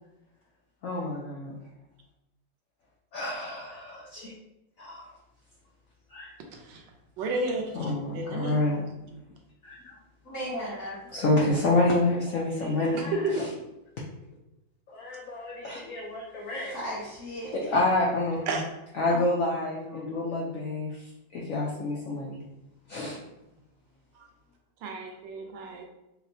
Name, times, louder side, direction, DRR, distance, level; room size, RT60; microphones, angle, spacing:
voice 1, 0.8-1.5 3.1-4.3 4.8-5.1 6.1-6.3 7.7-9.2 9.6-9.9 11.1-13.5 14.9-17.0 17.5-18.6 18.9-22.4 22.9-23.2, left 2 dB, 75° left, -3 dB, 0.7 m, -28 dB
voice 2, 6.5-6.8 7.2-8.6 12.9-13.5 18.5-18.6 24.2-24.3 24.8-25.9, right 2 dB, 90° right, 2 dB, 1.3 m, -32 dB
voice 3, 10.2-11.0 16.7-17.5 19.0-19.5 19.8-20.5, left 1 dB, 35° left, -8 dB, 1.1 m, -36 dB
4.4 x 2.1 x 2.6 m, 0.92 s
omnidirectional pair, 2.0 m